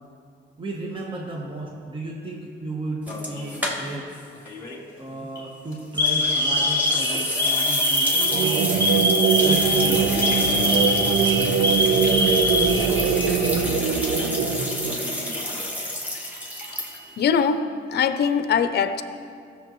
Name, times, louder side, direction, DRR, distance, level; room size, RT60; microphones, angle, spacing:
voice 1, 0.6-4.1 5.0-8.7 9.3-10.6, right 2 dB, 25° right, -2 dB, 1.2 m, -34 dB
Alarm, 3.1-3.6 4.5-4.8 5.2-5.4 6.0-13.5 13.8-13.9 14.9-15.6, left 1 dB, 15° left, 2.5 m, -24 dB
sound 1, 3.1-4.2 4.5-4.6 5.9-17.2, left 1 dB, 10° right, 1.5 m, -29 dB
sound 2, 8.1-15.5, right 6 dB, 80° right, 0.7 m, -23 dB
voice 2, 17.2-19.0, left 6 dB, 55° left, 10 dB, 0.6 m, -22 dB
15.0 x 6.9 x 3.1 m, 2.3 s
cardioid pair, 90°, 20 cm